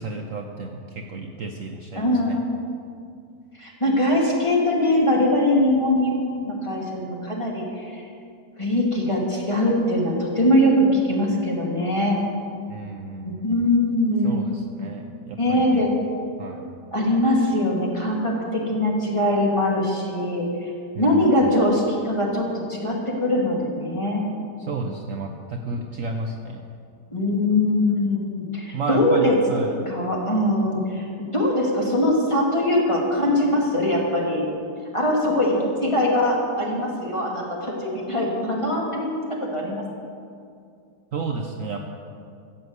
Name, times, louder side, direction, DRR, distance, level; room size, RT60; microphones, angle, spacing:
voice 1, 0.0-2.4 12.7-13.5 14.2-15.8 16.4-16.7 20.9-21.3 24.6-26.6 28.7-29.9 41.1-41.9, right 3 dB, 55° right, 3 dB, 1.1 m, -32 dB
voice 2, 1.9-2.4 3.6-8.0 8.6-12.2 13.2-14.4 15.4-15.9 16.9-20.7 20.9-24.2 27.1-29.4 29.9-34.4 34.9-35.6 35.8-39.8, left 1 dB, 15° left, -3 dB, 2.4 m, -22 dB
14.0 x 7.5 x 8.1 m, 2.4 s
omnidirectional pair, 1.8 m